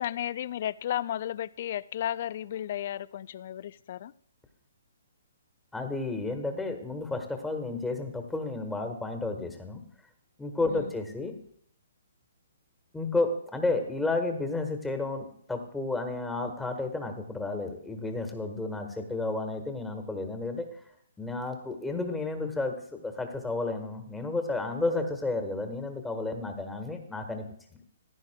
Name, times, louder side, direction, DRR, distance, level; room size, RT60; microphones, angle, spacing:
voice 1, 0.0-4.1 10.7-10.9, left 11 dB, 50° left, 20 dB, 0.3 m, -33 dB
voice 2, 5.7-9.8 10.4-11.3 12.9-20.7 21.2-27.5 27.7-27.8, left 2 dB, 5° left, 5 dB, 1.4 m, -32 dB
15.0 x 10.5 x 2.2 m, 0.67 s
hypercardioid pair, 135°, 0 cm